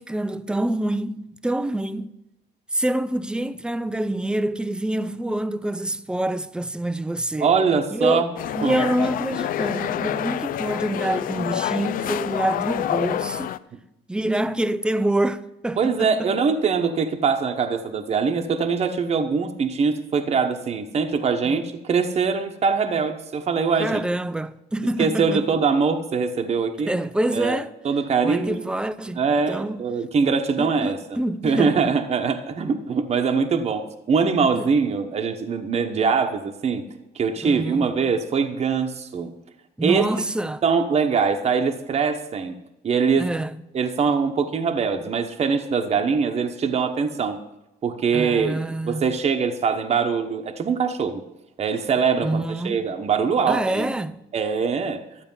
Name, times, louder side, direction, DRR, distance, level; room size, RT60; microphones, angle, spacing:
voice 1, 0.0-2.1 2.7-7.5 7.9-8.2 8.5-13.5 14.1-16.3 21.4-21.6 23.8-25.5 26.9-27.7 28.2-29.2 29.5-29.8 30.6-31.9 34.6-34.7 37.4-37.9 39.8-40.6 43.2-43.6 48.1-49.0 52.2-52.8 53.4-54.2, right 1 dB, 5° right, 0.5 m, -26 dB
voice 2, 7.4-8.3 8.6-8.8 15.8-24.0 25.0-27.0 27.3-27.6 27.8-28.6 29.2-31.2 31.4-36.9 37.1-39.3 39.8-40.0 40.6-42.6 42.8-43.3 43.7-47.4 47.8-48.6 48.9-51.2 51.6-53.9 54.3-55.0, right 5 dB, 40° right, 1.0 m, -23 dB
sound 1, 8.4-13.6, left 11 dB, 55° left, 0.4 m, -27 dB
12.5 x 8.4 x 5.5 m
cardioid pair, 110°, 17 cm